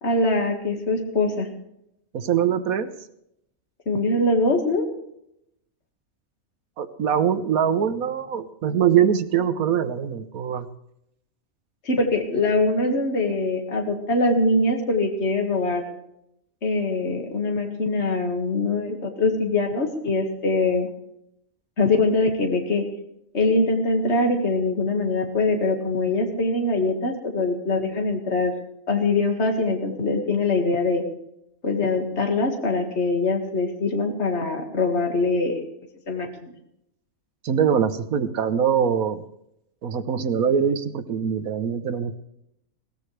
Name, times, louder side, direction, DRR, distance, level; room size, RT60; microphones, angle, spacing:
voice 1, 0.0-1.5 3.9-4.9 11.8-15.8 16.6-20.9 21.8-22.8 23.3-28.5 28.9-31.0 31.6-35.6 36.1-36.5, left 2 dB, 50° left, 3 dB, 2.2 m, -23 dB
voice 2, 2.1-2.9 6.8-10.7 37.4-39.2 39.8-42.1, right 8 dB, 85° right, 10 dB, 1.4 m, -23 dB
21.5 x 18.5 x 3.3 m, 0.78 s
omnidirectional pair, 1.5 m